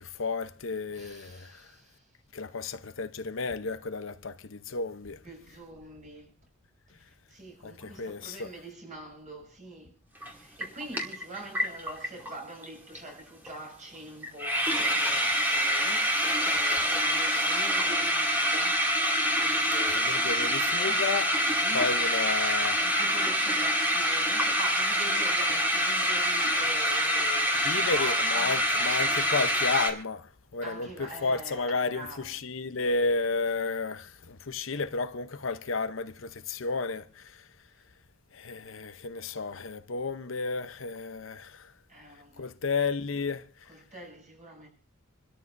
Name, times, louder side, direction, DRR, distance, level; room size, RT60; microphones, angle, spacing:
voice 1, 0.0-1.6 2.3-5.2 7.6-8.5 19.9-21.3 21.7-22.8 27.6-30.3 30.5-37.2 38.3-41.7 42.4-43.5, left 4 dB, 65° left, 0.8 m, -32 dB
voice 2, 0.9-2.0 5.2-6.3 7.3-9.9 10.2-18.9 19.2-21.1 21.3-21.9 22.8-28.9 30.6-32.3 41.9-42.5 43.7-44.7, right 1 dB, 40° right, 7.2 m, -44 dB
sound 1, 10.2-10.3 10.6-12.4 12.6-12.7 12.9-13.2 13.5-13.6 13.9-14.0 14.2-29.9, equal, 10° right, 2.5 m, -26 dB
28.0 x 13.5 x 2.6 m
head